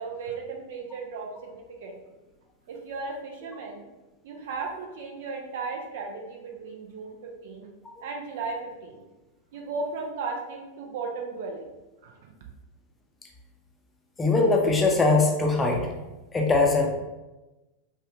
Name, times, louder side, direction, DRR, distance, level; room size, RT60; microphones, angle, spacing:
voice 1, 0.0-2.0 2.7-3.8 4.2-7.7 8.0-9.0 9.5-11.7 12.0-12.3, right 4 dB, 55° right, 1 dB, 0.7 m, -36 dB
voice 2, 14.2-15.9 16.3-16.9, left 3 dB, 15° left, 1 dB, 0.7 m, -21 dB
5.5 x 2.5 x 3.0 m, 1.1 s
figure-of-eight pair, 90°, 0 cm